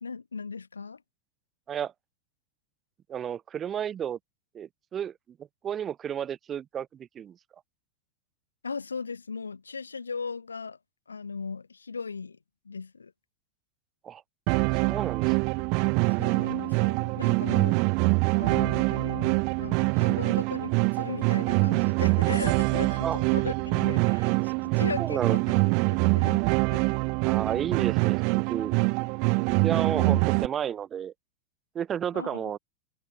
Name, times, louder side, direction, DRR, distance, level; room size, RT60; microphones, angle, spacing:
voice 1, 0.0-1.0 8.6-10.8 11.1-12.4 12.6-13.1 16.2-17.8 18.3-25.6 25.9-26.9 29.6-30.2 32.1-32.6, left 5 dB, 75° left, 0.8 m, -37 dB
voice 2, 3.1-4.2 4.5-5.1 5.6-7.4 14.0-14.2 14.9-15.6 23.0-23.2 25.0-25.4 27.2-28.7 29.6-31.1 31.7-32.6, right 9 dB, 25° right, 0.9 m, -32 dB
sound 1, 14.5-30.5, right 35 dB, 45° right, 0.4 m, -24 dB
figure-of-eight pair, 90°, 0 cm